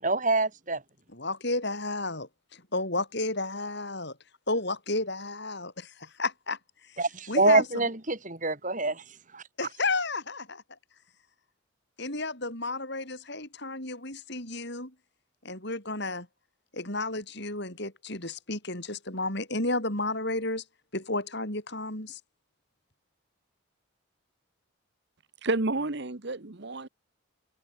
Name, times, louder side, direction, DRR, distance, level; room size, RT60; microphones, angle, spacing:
voice 1, 0.0-0.8 7.0-9.0 9.3-9.4, right 3 dB, 35° right, 4.3 m, -25 dB
voice 2, 1.1-4.1 4.5-6.6 7.3-7.6 9.6-10.6 12.0-14.9 15.4-16.3 16.7-20.6 20.9-22.2, left 2 dB, 50° left, 8.0 m, -32 dB
voice 3, 25.4-26.9, right 2 dB, 55° right, 1.2 m, -30 dB
head